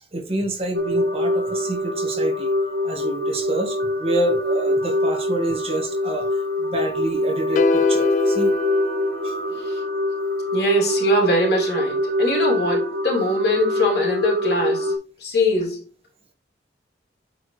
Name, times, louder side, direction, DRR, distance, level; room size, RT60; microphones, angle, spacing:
voice 1, 0.1-2.5 2.8-8.5 9.2-9.3, right 1 dB, 35° right, 1.7 m, -28 dB
sound 1, 0.7-15.0, left 1 dB, 85° right, 1.6 m, -24 dB
sound 2, 7.6-9.9, left 3 dB, 45° left, 0.3 m, -23 dB
voice 2, 10.5-14.9 15.2-15.8, left 1 dB, 65° left, 3.3 m, -22 dB
8.7 x 4.9 x 3.3 m
head